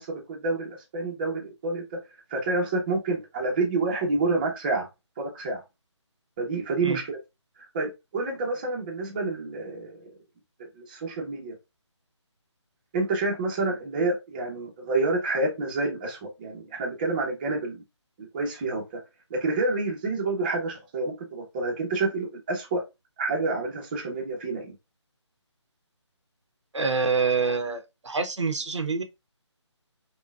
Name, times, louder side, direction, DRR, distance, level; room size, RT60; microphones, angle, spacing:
voice 1, 0.0-2.0 2.3-4.9 5.2-5.6 6.4-7.2 7.6-10.2 10.8-11.5 12.9-17.8 18.2-19.0 19.3-22.8 23.2-24.7, right 3 dB, 20° right, 0.7 m, -28 dB
voice 2, 26.7-29.0, right 4 dB, 75° right, 0.8 m, -26 dB
5.3 x 2.2 x 2.3 m
figure-of-eight pair, 160°, 15 cm